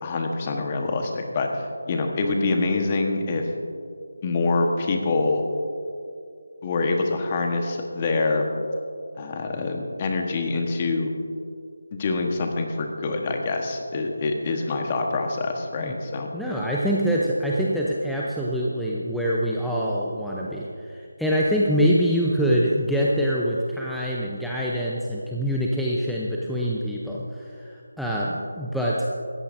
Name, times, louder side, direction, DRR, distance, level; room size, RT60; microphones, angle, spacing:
voice 1, 0.0-3.4 4.2-5.4 6.6-8.4 9.2-11.1 11.9-16.3, left 3 dB, 25° left, 3 dB, 1.2 m, -25 dB
voice 2, 16.3-29.1, equal, ahead, -6 dB, 0.6 m, -25 dB
17.5 x 14.0 x 2.6 m, 2.4 s
figure-of-eight pair, 165°, 0 cm